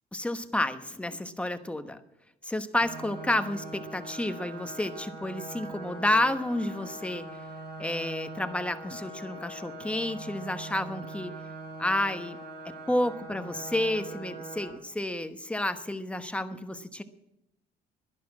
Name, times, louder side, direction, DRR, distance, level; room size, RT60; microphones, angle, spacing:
voice 1, 0.1-2.0 2.4-7.2 7.8-11.4 11.8-12.4 12.9-17.0, left 1 dB, 5° left, 10 dB, 1.1 m, -30 dB
sound 1, 2.8-14.7, right 2 dB, 75° right, 5.3 m, -42 dB
12.0 x 11.0 x 7.4 m, 0.87 s
cardioid pair, 110°, 17 cm